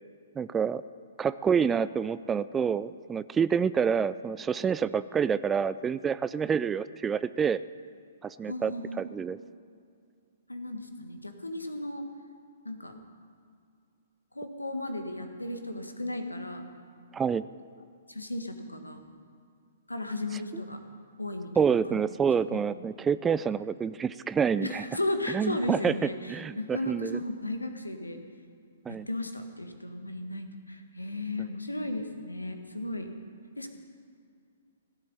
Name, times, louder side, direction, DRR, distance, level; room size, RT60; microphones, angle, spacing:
voice 1, 0.4-0.8 1.2-7.6 8.2-9.4 17.1-17.4 20.5-20.6 21.6-24.8 25.3-25.9 26.3-27.2 28.9-29.1 31.4-31.5, right 7 dB, 15° right, 16 dB, 0.3 m, -28 dB
voice 2, 8.4-9.0 10.5-12.0 12.6-12.9 14.3-16.6 18.1-19.0 19.9-20.8 21.2-22.0 22.5-22.6 24.6-28.2 28.9-33.1 33.6-33.7, left 1 dB, 85° left, 6 dB, 1.6 m, -35 dB
17.5 x 7.5 x 9.9 m, 2.3 s
figure-of-eight pair, 120°, 0 cm